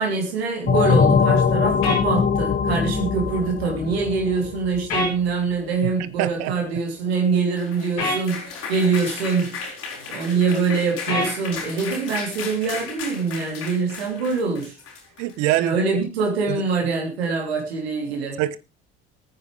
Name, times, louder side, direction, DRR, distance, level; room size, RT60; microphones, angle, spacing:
voice 1, 0.0-8.4 8.7-9.5 10.1-14.7 15.6-18.4, right 4 dB, 75° right, 3.1 m, -24 dB
sound 1, 0.7-5.1, left 6 dB, 30° left, 1.3 m, -21 dB
sound 2, 1.8-2.0 4.9-5.1 8.0-8.2 11.1-11.3, left 1 dB, 70° left, 7.1 m, -23 dB
voice 2, 6.2-6.5 10.1-10.3 15.2-15.8 16.5-16.6 18.4-18.6, right 15 dB, 55° right, 0.8 m, -24 dB
sound 3, 7.3-15.6, left 5 dB, 50° left, 5.5 m, -35 dB
21.5 x 9.6 x 3.3 m
figure-of-eight pair, 50°, 31 cm